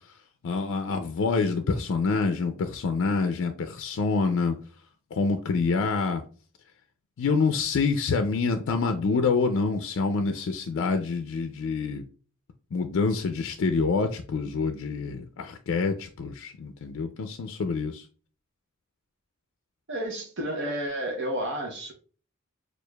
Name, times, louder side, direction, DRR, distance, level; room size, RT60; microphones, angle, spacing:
voice 1, 0.4-4.6 5.1-6.2 7.2-12.0 12.7-18.1, left 4 dB, 60° left, 0.4 m, -26 dB
voice 2, 19.9-21.9, right 1 dB, 60° right, 0.7 m, -31 dB
6.3 x 2.4 x 2.2 m
head